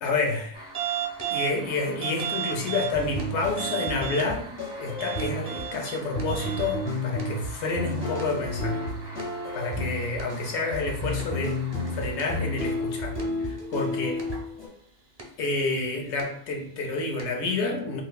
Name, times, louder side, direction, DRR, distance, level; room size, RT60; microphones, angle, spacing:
voice 1, 0.0-0.7 1.3-4.5 4.8-8.8 9.5-11.6 11.9-14.2 15.4-18.0, left 3 dB, 65° left, 1 dB, 0.9 m, -29 dB
sound 1, 0.5-13.8 14.2-14.4 15.2-15.3 16.1-16.2 17.2-17.3, right 8 dB, 35° right, 0.4 m, -37 dB
sound 2, 2.9-14.7, left 1 dB, 25° left, 0.8 m, -32 dB
3.8 x 2.6 x 2.2 m, 0.66 s
omnidirectional pair, 1.3 m